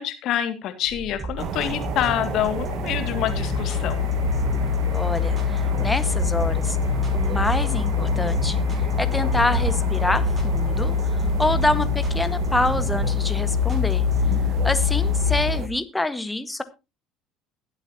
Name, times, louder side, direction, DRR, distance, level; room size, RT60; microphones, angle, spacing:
voice 1, 0.0-4.1, left 11 dB, 55° left, 8 dB, 2.2 m, -26 dB
sound 1, 0.9-15.8, left 6 dB, 90° right, 3.2 m, -24 dB
sound 2, 1.2-14.3, right 5 dB, 30° right, 4.6 m, -35 dB
sound 3, 1.4-15.7, right 8 dB, 50° right, 1.2 m, -33 dB
voice 2, 4.9-6.8 7.1-14.0 14.6-16.6, left 2 dB, 10° left, 11 dB, 1.6 m, -26 dB
21.5 x 8.1 x 2.9 m, 0.27 s
hypercardioid pair, 65°, 0 cm